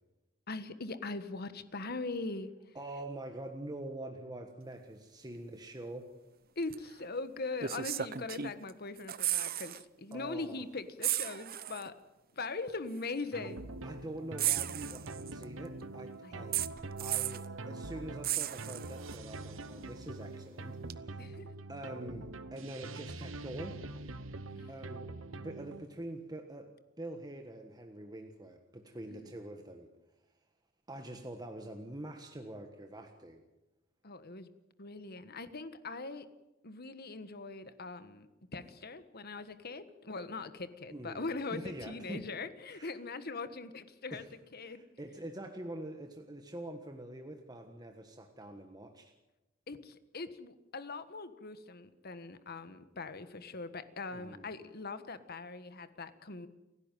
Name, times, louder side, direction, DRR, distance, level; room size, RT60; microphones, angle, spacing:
voice 1, 0.5-2.8 6.5-11.9 12.3-13.7 16.2-16.7 21.2-21.5 24.5-24.8 29.1-29.3 34.0-34.5 34.8-36.2 36.6-44.3 44.5-44.8 49.7-56.5, left 3 dB, 50° left, 12 dB, 1.4 m, -41 dB
voice 2, 2.7-6.1 10.1-10.6 13.8-16.6 17.0-21.4 21.7-23.8 24.7-26.7 27.0-29.9 30.9-33.4 40.9-42.2 42.7-42.9 44.1-44.3 44.6-49.1 54.1-54.5, right 1 dB, 20° right, 5 dB, 1.5 m, -45 dB
sound 1, 6.7-6.9 7.6-8.7 9.0-9.8 10.1-10.3 11.0-11.9 12.9-13.0 14.4-15.4 16.5-17.5 18.2-19.2 20.9-21.0, right 12 dB, 50° right, 0.8 m, -34 dB
sound 2, 13.3-25.8, right 2 dB, 80° right, 1.3 m, -44 dB
30.0 x 10.5 x 9.2 m, 0.99 s
head